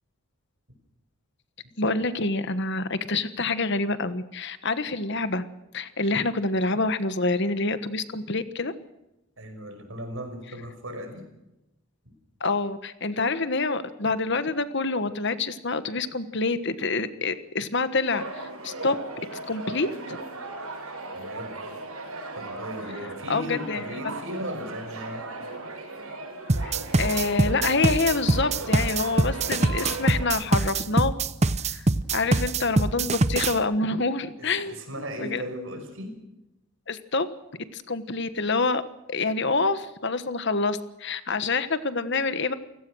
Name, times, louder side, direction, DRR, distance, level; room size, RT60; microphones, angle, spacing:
voice 1, 1.8-5.4 5.7-8.7 12.4-19.0 19.5-20.2 23.3-24.1 26.6-26.7 27.0-31.1 31.7-31.8 32.1-34.8 35.2-35.4 36.9-37.3 37.7-38.8 39.1-42.5, left 3 dB, 50° left, 12 dB, 1.4 m, -27 dB
voice 2, 9.4-11.3 14.1-14.2 21.1-21.6 22.4-25.3 34.4-36.2, equal, 60° right, 7 dB, 5.6 m, -37 dB
sound 1, 18.1-30.3, right 2 dB, 75° right, 6.7 m, -37 dB
sound 2, 26.5-33.6, right 2 dB, 30° right, 0.7 m, -23 dB
29.5 x 17.0 x 6.3 m, 0.92 s
head